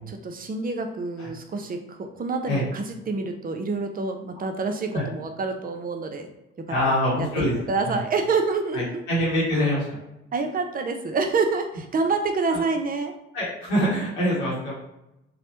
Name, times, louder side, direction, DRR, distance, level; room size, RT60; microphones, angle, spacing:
voice 1, 0.1-6.3 6.6-9.0 10.3-13.1, right 4 dB, 30° right, 5 dB, 0.5 m, -27 dB
voice 2, 6.7-7.6 7.9-8.0 8.7-10.0 12.5-12.6 13.3-14.7, equal, 85° left, -7 dB, 1.1 m, -24 dB
3.1 x 2.1 x 2.8 m, 0.90 s
hypercardioid pair, 45°, 32 cm